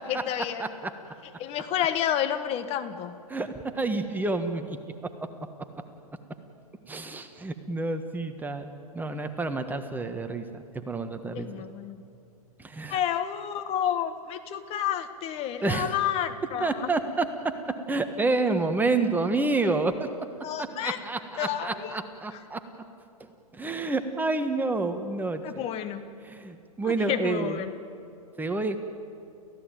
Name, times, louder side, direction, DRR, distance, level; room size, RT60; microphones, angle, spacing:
voice 1, 0.1-0.7 1.4-3.1 11.3-12.0 12.9-16.9 20.4-21.0 21.4-21.9 22.3-22.4 25.4-26.0 26.8-27.7, left 10 dB, 30° left, 9 dB, 1.4 m, -30 dB
voice 2, 3.3-4.8 6.9-11.5 12.6-13.0 15.6-15.9 16.6-17.3 17.9-20.1 20.6-22.6 23.5-25.4 26.2-27.6 28.4-28.8, right 3 dB, 10° right, 7 dB, 1.5 m, -29 dB
29.5 x 15.5 x 9.3 m, 2.6 s
hypercardioid pair, 120°, 19 cm